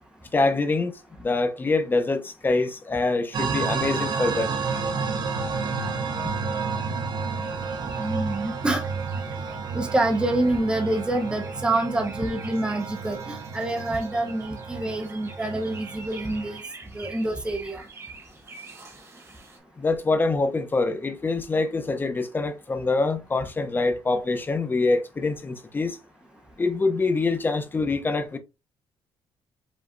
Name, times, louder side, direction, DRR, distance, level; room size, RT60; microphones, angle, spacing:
voice 1, 0.3-0.9 1.2-4.5 19.8-26.0 26.6-28.4, left 3 dB, 20° left, 0.7 m, -25 dB
sound 1, 3.3-16.6, right 5 dB, 50° right, 0.8 m, -31 dB
sound 2, 7.4-19.6, right 3 dB, 30° right, 1.6 m, -47 dB
voice 2, 8.0-8.8 9.7-16.6 16.9-17.8, right 2 dB, 10° right, 0.8 m, -26 dB
5.1 x 3.2 x 2.6 m
cardioid pair, 125°, 9 cm